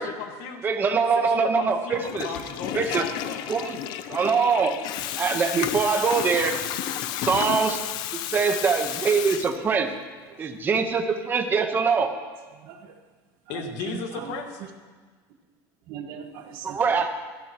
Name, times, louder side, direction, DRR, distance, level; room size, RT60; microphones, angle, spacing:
voice 1, 0.0-0.6 1.1-3.5 13.5-14.6, left 5 dB, 70° left, 4 dB, 1.8 m, -35 dB
voice 2, 0.6-2.3 2.7-3.1 3.5-3.8 4.1-4.8 5.2-6.6 7.2-7.8 8.1-9.9 10.4-12.1 16.6-17.1, right 5 dB, 20° right, 5 dB, 1.1 m, -23 dB
Water tap faucet / Toilet flush, 1.9-9.9, left 11 dB, 55° left, 0.6 m, -32 dB
voice 3, 7.0-7.5 8.5-8.6 10.3-10.6 12.6-13.0 13.5-14.3 15.9-16.8, right 8 dB, 60° right, 3 dB, 1.6 m, -40 dB
18.5 x 13.5 x 3.0 m, 1.4 s
cardioid pair, 155°, 9 cm